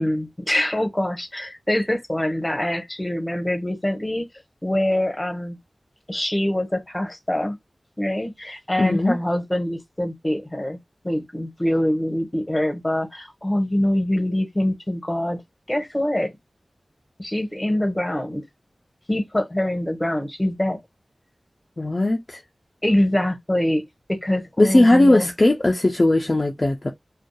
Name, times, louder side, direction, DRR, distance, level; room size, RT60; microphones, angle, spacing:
voice 1, 0.0-4.2 4.6-5.6 6.1-7.6 8.0-10.8 11.0-15.4 15.7-16.3 17.2-18.4 19.1-20.8 22.8-23.8 24.1-25.3, left 1 dB, 20° left, 1.0 m, -24 dB
voice 2, 8.8-9.2 21.8-22.4 24.6-26.9, left 1 dB, 45° left, 0.5 m, -18 dB
2.7 x 2.3 x 2.2 m
cardioid pair, 40°, 0 cm